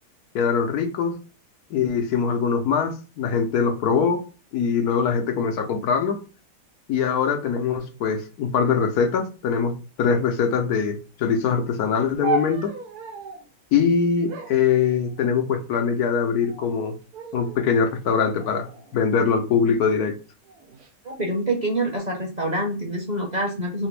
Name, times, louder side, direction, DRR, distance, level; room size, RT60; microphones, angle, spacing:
voice 1, 0.3-1.2 1.7-4.2 4.5-6.2 6.9-9.7 10.0-12.7 13.7-16.9 17.3-18.7 18.9-20.2, left 6 dB, 80° left, 5 dB, 1.2 m, -22 dB
sound 1, 12.2-13.5 14.3-15.5 16.3-16.8 17.1-17.7 18.4-19.7 20.5-20.9, right 4 dB, 80° right, 1.3 m, -34 dB
voice 2, 21.0-23.9, right 1 dB, 35° right, 0 dB, 0.9 m, -26 dB
3.4 x 2.9 x 3.2 m, 0.34 s
omnidirectional pair, 1.6 m